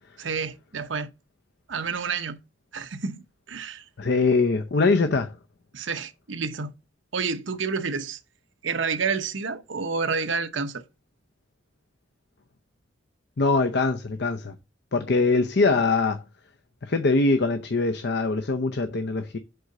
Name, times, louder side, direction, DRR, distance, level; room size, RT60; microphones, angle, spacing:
voice 1, 0.2-1.1 1.7-2.4 2.7-3.8 5.7-6.7 7.1-8.2 8.6-10.8, right 5 dB, 75° right, 0.8 m, -29 dB
voice 2, 4.0-5.3 13.4-14.5 14.9-16.2 16.8-19.4, left 3 dB, 60° left, 0.7 m, -22 dB
7.9 x 3.9 x 6.5 m
head